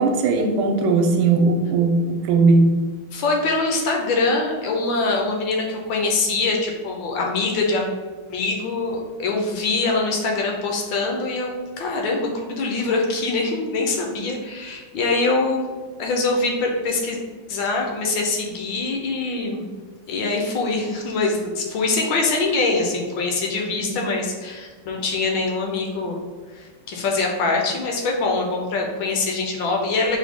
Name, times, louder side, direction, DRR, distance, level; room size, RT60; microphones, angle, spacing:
voice 1, 0.0-2.8 23.7-23.8, right 3 dB, 80° right, 3 dB, 1.4 m, -18 dB
voice 2, 3.1-7.9 8.3-15.6 16.0-17.2 17.5-19.7 20.1-26.2 26.5-30.2, left 3 dB, 75° left, 1 dB, 1.3 m, -23 dB
4.8 x 2.1 x 3.5 m, 1.4 s
omnidirectional pair, 2.3 m